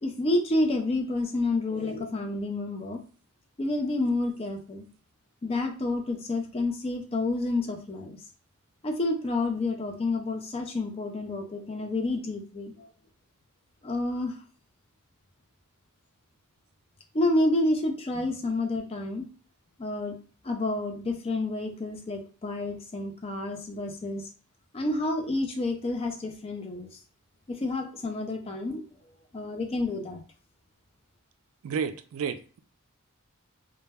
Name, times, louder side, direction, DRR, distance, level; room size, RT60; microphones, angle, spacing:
voice 1, 0.0-3.0 3.6-4.9 5.4-8.2 8.8-12.9 13.8-14.3 17.1-19.3 19.8-20.2 20.4-24.3 24.7-26.9 27.5-28.8 29.3-30.2, left 2 dB, 25° left, 0.4 m, -29 dB
voice 2, 31.6-32.6, right 6 dB, 65° right, 0.3 m, -31 dB
2.2 x 2.0 x 3.3 m
head